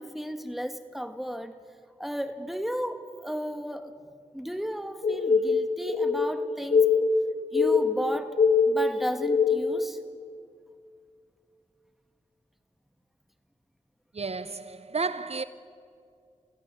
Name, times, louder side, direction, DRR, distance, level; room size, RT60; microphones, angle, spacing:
voice 1, 0.0-1.6 2.0-3.9 4.3-6.9 7.5-8.3 8.7-10.0, equal, ahead, 1.9 m, -34 dB
sound 1, 5.0-9.9, left 5 dB, 80° left, 1.3 m, -23 dB
voice 2, 14.1-15.4, right 4 dB, 60° right, 0.7 m, -32 dB
28.5 x 15.5 x 8.5 m
cardioid pair, 45°, 12 cm